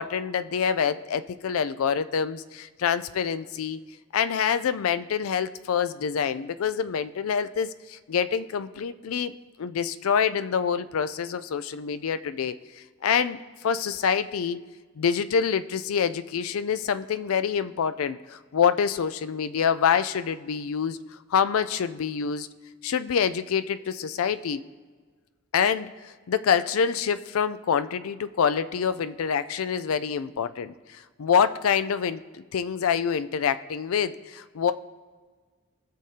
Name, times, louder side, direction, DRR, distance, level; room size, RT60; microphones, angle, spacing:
voice 1, 0.0-3.8 4.1-9.3 9.6-12.6 13.0-13.4 13.6-14.6 15.0-21.0 21.3-22.5 22.8-24.6 25.5-34.7, left 7 dB, 85° left, 13 dB, 0.4 m, -26 dB
17.0 x 6.6 x 2.8 m, 1.4 s
head